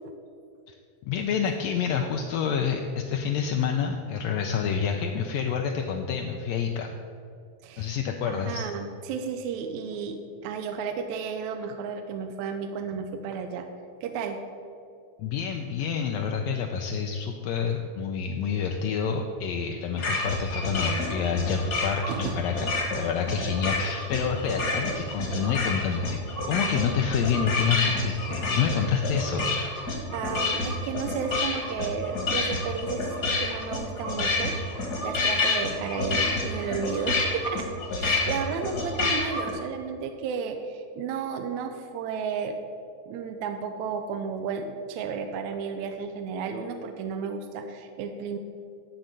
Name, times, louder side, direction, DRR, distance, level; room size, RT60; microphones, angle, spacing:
voice 1, 1.1-6.9 7.8-8.6 15.2-26.2 26.5-29.5, left 6 dB, 80° left, 3 dB, 1.6 m, -28 dB
voice 2, 7.6-8.0 8.3-13.7 14.0-14.4 22.1-22.4 30.1-42.6 43.1-48.4, right 6 dB, 80° right, 6 dB, 1.8 m, -33 dB
sound 1, 20.0-39.5, left 2 dB, 45° left, 1.4 m, -29 dB
11.5 x 3.9 x 7.5 m, 2.4 s
omnidirectional pair, 3.5 m